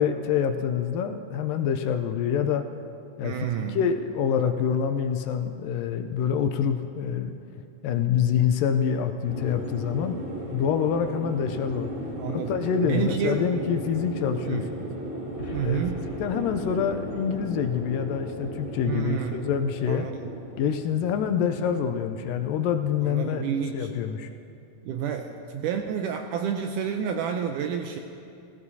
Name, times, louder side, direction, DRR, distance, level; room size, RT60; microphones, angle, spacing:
voice 1, 0.0-2.6 3.2-3.4 3.8-7.3 7.8-10.2 10.5-11.9 12.3-14.9 15.6-15.8 16.2-20.1 20.6-23.4 23.7-24.3, left 8 dB, 80° left, 7 dB, 2.1 m, -26 dB
voice 2, 3.2-3.8 12.2-12.5 12.8-13.5 14.4-14.7 15.5-16.0 18.9-19.4 19.9-20.3 23.0-23.9 24.8-28.0, right 8 dB, 85° right, 4 dB, 1.8 m, -29 dB
sound 1, 9.2-24.1, equal, 45° right, 4.5 m, -37 dB
Boom, 15.4-19.8, equal, 35° left, 2.4 m, -45 dB
18.0 x 15.5 x 2.8 m, 2.6 s
omnidirectional pair, 4.2 m